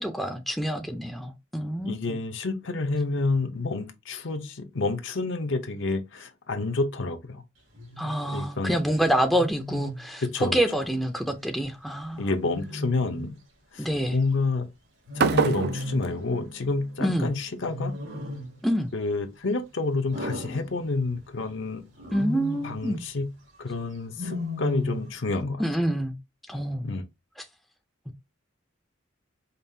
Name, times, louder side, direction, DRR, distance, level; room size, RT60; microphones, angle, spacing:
voice 1, 0.0-2.2 8.0-12.3 13.8-14.2 17.0-17.3 18.6-18.9 22.1-23.0 25.6-26.1 26.5-26.9, right 1 dB, ahead, 0.5 m, -27 dB
voice 2, 1.9-7.4 8.3-8.7 10.3-10.6 12.2-13.4 13.7-14.7 15.2-17.9 18.9-21.8 22.6-23.3 23.6-25.6 26.8-27.0, left 3 dB, 65° left, 0.7 m, -29 dB
Wild animals, 7.7-8.1 9.3-10.0 12.4-13.3 15.1-16.1 17.6-18.6 20.1-21.2 22.0-22.8 24.1-25.2, left 1 dB, 80° right, 2.1 m, -34 dB
sound 1, 15.2-17.2, right 5 dB, 55° right, 0.4 m, -28 dB
5.3 x 2.4 x 2.7 m
head